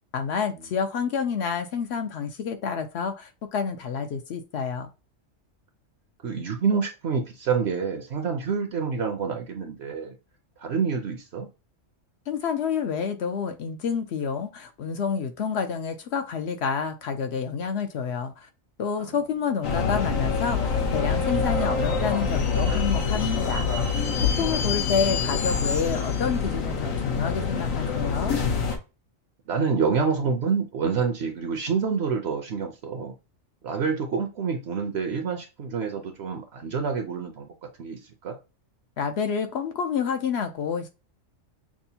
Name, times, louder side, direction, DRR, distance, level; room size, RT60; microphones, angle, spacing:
voice 1, 0.1-4.9 12.3-18.5 18.8-23.7 24.4-28.4 39.0-40.9, left 6 dB, 65° left, 0.8 m, -28 dB
voice 2, 6.2-10.2 10.6-11.5 19.0-19.2 29.5-33.1 33.6-38.4, right 5 dB, 60° right, 0.8 m, -27 dB
sound 1, 19.6-28.8, left 5 dB, 85° left, 1.3 m, -25 dB
6.0 x 2.1 x 2.7 m
omnidirectional pair, 1.4 m